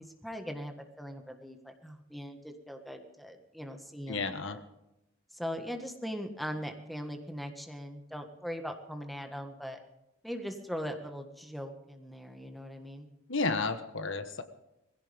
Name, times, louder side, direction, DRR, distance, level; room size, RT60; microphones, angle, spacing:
voice 1, 0.0-4.6 5.3-9.8 10.2-13.1, equal, ahead, 5 dB, 1.6 m, -40 dB
voice 2, 4.1-4.6 13.3-14.4, left 3 dB, 65° left, 9 dB, 1.4 m, -32 dB
20.5 x 16.5 x 3.6 m, 0.90 s
head